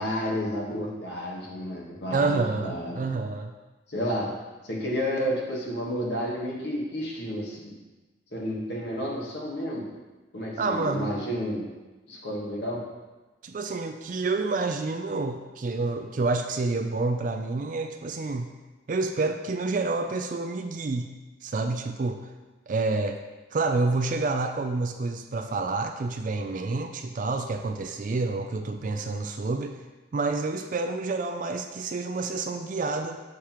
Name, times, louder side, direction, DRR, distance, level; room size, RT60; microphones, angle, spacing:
voice 1, 0.0-3.0 3.9-4.2 4.6-7.8 8.3-9.9 10.3-11.7 12.1-12.8, equal, 65° left, -2 dB, 1.4 m, -31 dB
voice 2, 2.1-3.5 10.6-11.1 13.4-18.5 18.9-21.1 21.4-22.2 22.7-23.2 23.5-29.7 30.1-33.2, right 3 dB, 45° right, 6 dB, 0.4 m, -28 dB
7.0 x 6.5 x 3.0 m, 1.2 s
head